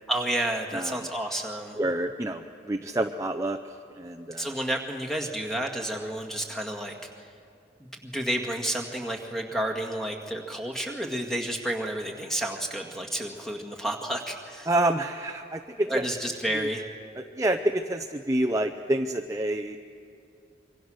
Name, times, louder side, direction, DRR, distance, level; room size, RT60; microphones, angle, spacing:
voice 1, 0.1-1.8 4.4-7.3 8.0-14.7 15.9-16.8, right 1 dB, ahead, 2 dB, 2.0 m, -30 dB
voice 2, 1.8-3.6 4.0-4.5 14.7-16.0 17.2-19.8, right 1 dB, 15° right, 6 dB, 0.6 m, -28 dB
26.0 x 24.0 x 6.4 m, 2.4 s
head